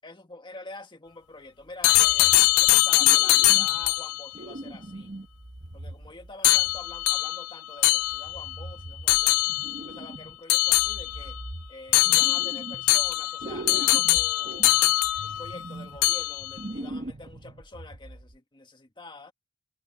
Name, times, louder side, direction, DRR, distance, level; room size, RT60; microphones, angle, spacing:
voice 1, 0.0-2.3 2.6-5.1 5.7-9.4 9.8-11.4 11.7-14.8 15.2-19.3, left 2 dB, 20° left, 1.6 m, -46 dB
sound 1, 1.8-4.2 6.4-8.5 9.1-9.9 10.5-11.4 11.9-15.7 16.0-16.6, left 17 dB, 75° left, 0.5 m, -22 dB
sound 2, 1.9-2.7 3.0-4.0 4.3-7.2 8.0-10.4 10.7-13.1 13.4-18.4, right 1 dB, 35° right, 1.0 m, -41 dB
head